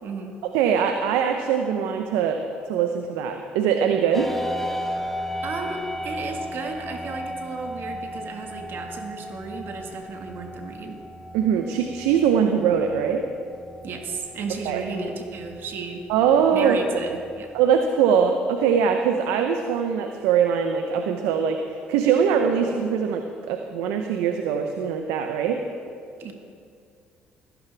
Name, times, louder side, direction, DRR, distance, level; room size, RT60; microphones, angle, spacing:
voice 1, 0.0-0.4 5.4-11.0 13.8-16.0 16.5-17.5 26.2-26.3, right 4 dB, 60° right, 3 dB, 1.7 m, -34 dB
voice 2, 0.5-4.3 11.3-13.2 14.7-14.8 16.1-16.8 17.0-17.2 17.5-25.6, right 7 dB, 80° right, 5 dB, 0.7 m, -22 dB
sound 1, 4.1-17.7, equal, 5° left, 1.2 m, -36 dB
15.5 x 15.0 x 3.5 m, 2.4 s
supercardioid pair, 65°, 4 cm